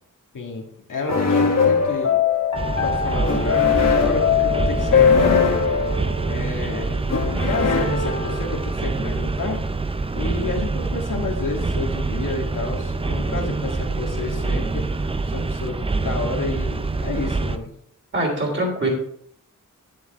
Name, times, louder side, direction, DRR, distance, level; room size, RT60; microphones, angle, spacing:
voice 1, 0.9-2.2 2.8-6.0 6.3-9.6 10.1-14.9 15.2-17.7, left 3 dB, 75° left, 1 dB, 1.7 m, -30 dB
sound 1, 1.1-8.8, left 6 dB, 55° left, 1.4 m, -21 dB
sound 2, 2.5-17.6, right 3 dB, 20° right, 0.4 m, -26 dB
voice 2, 18.1-18.9, right 1 dB, 35° right, -1 dB, 3.2 m, -23 dB
9.6 x 7.7 x 3.4 m, 0.67 s
wide cardioid pair, 140°, 32 cm